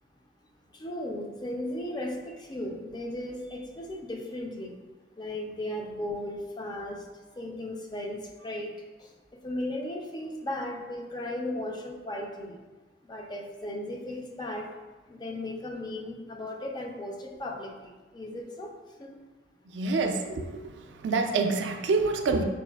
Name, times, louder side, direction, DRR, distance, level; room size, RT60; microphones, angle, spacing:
voice 1, 0.7-4.8 5.2-7.1 7.4-8.7 9.0-12.6 13.0-14.7 15.1-18.7 19.0-19.1, left 1 dB, 25° left, 1 dB, 0.4 m, -36 dB
voice 2, 19.7-20.7 21.0-22.4, right 3 dB, 80° right, 5 dB, 0.4 m, -26 dB
5.2 x 2.4 x 2.3 m, 1.2 s
head